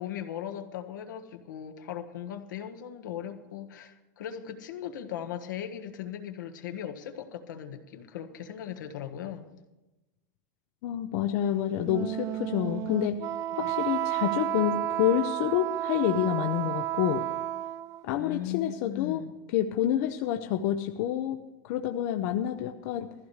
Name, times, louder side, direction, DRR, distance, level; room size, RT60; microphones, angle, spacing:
voice 1, 0.0-9.5 13.6-13.8 18.2-19.3, left 10 dB, 90° left, 6 dB, 1.4 m, -38 dB
voice 2, 10.8-13.2 13.5-17.2 18.0-19.2 19.5-23.1, left 11 dB, 60° left, 6 dB, 0.8 m, -28 dB
Wind instrument woodwind instrument, 11.8-18.0, right 14 dB, 35° right, 0.4 m, -32 dB
19.5 x 14.5 x 3.3 m, 1.0 s
supercardioid pair, 130°, 10 cm